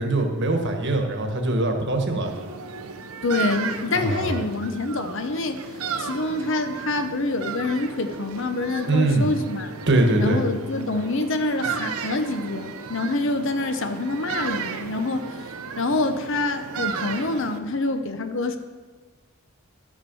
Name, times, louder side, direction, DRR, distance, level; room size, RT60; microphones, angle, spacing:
voice 1, 0.0-2.3 3.9-4.4 8.9-9.3 9.9-10.4, right 2 dB, 55° right, 4 dB, 1.3 m, -22 dB
sound 1, 2.2-17.6, right 5 dB, 75° right, 0.7 m, -34 dB
voice 2, 3.2-9.7 10.2-15.4 15.8-18.6, left 2 dB, 60° left, 8 dB, 0.7 m, -26 dB
12.0 x 6.5 x 6.1 m, 1.4 s
head